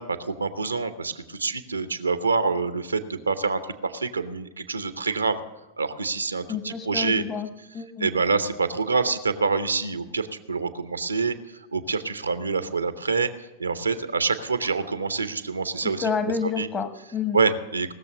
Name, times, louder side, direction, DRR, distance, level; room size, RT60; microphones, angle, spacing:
voice 1, 0.0-5.4 5.8-7.2 8.0-13.3 13.6-16.1 16.6-16.7 17.3-17.9, right 4 dB, 80° right, 12 dB, 0.7 m, -26 dB
voice 2, 6.5-7.5 7.7-8.1 15.8-17.4, left 6 dB, 25° left, 9 dB, 1.2 m, -29 dB
18.0 x 6.9 x 6.4 m, 1.0 s
figure-of-eight pair, 90°, 0 cm